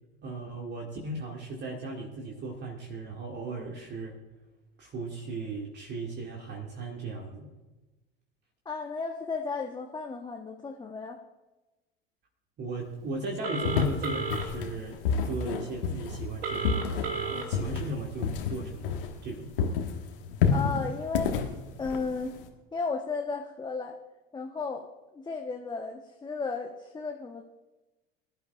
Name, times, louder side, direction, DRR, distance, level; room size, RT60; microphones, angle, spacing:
voice 1, 0.2-4.1 4.8-7.5 12.6-15.0 15.2-19.5, right 2 dB, 35° right, 0 dB, 2.1 m, -37 dB
voice 2, 8.6-11.2 20.5-21.4 21.8-22.3 22.7-24.0 24.3-24.9 25.1-27.4, left 4 dB, 15° left, 2 dB, 1.1 m, -34 dB
Telephone, 13.4-14.4 16.4-17.4, right 4 dB, 75° right, 1.9 m, -32 dB
sound 1, 13.6-19.3 19.6-22.5, left 6 dB, 65° left, 1.6 m, -30 dB
22.5 x 12.0 x 2.5 m, 1.1 s
figure-of-eight pair, 70°, 30 cm